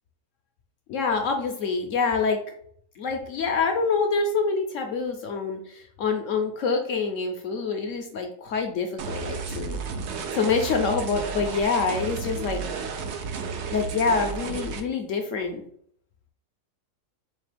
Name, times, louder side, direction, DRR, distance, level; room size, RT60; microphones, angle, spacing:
voice 1, 0.9-2.4 3.0-9.8 10.3-12.6 13.7-15.6, left 4 dB, 70° left, 4 dB, 0.7 m, -26 dB
sound 1, 9.0-14.8, right 5 dB, 90° right, 0.6 m, -32 dB
4.2 x 3.1 x 3.3 m, 0.64 s
omnidirectional pair, 1.9 m